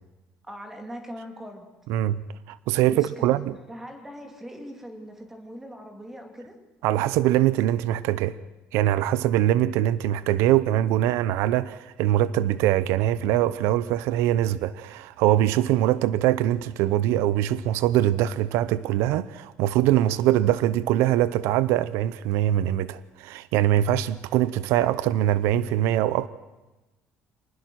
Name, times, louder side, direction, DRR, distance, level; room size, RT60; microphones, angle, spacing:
voice 1, 0.4-1.7 2.9-3.4 3.7-6.6, equal, 10° right, 2.6 m, -40 dB
voice 2, 1.9-2.2 2.5-3.5 6.8-8.4 8.7-26.3, right 13 dB, 90° right, 0.7 m, -23 dB
26.0 x 19.5 x 6.2 m
cardioid pair, 175°, 4 cm